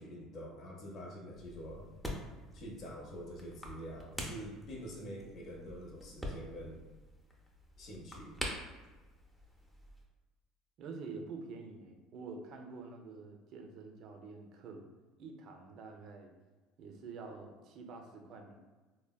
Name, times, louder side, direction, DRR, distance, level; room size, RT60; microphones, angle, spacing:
voice 1, 0.0-1.9 2.5-6.8 7.8-8.4, equal, 45° left, -1 dB, 0.6 m, -46 dB
sound 1, 1.3-10.0, equal, 5° left, 0.5 m, -46 dB
voice 2, 10.8-14.8 15.2-16.3 16.8-18.6, right 4 dB, 55° right, 4 dB, 0.4 m, -47 dB
3.3 x 2.1 x 2.2 m, 1.2 s
supercardioid pair, 110°, 0 cm